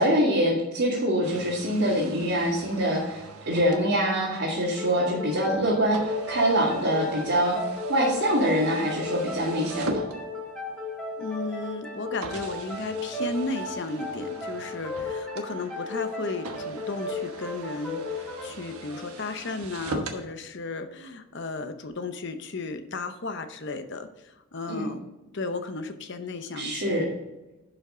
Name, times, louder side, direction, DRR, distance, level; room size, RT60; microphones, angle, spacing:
voice 1, 0.0-7.6 7.9-10.0 24.7-24.8 26.5-27.1, equal, 55° right, -6 dB, 2.1 m, -24 dB
sound 1, 1.2-10.7 11.4-11.5 12.2-20.2, right 2 dB, 80° right, 1.2 m, -40 dB
sound 2, 4.8-20.1, left 3 dB, 5° left, 1.9 m, -35 dB
voice 2, 11.2-25.0 25.3-27.1, left 3 dB, 50° left, 9 dB, 0.8 m, -34 dB
11.0 x 5.6 x 3.8 m, 1.0 s
head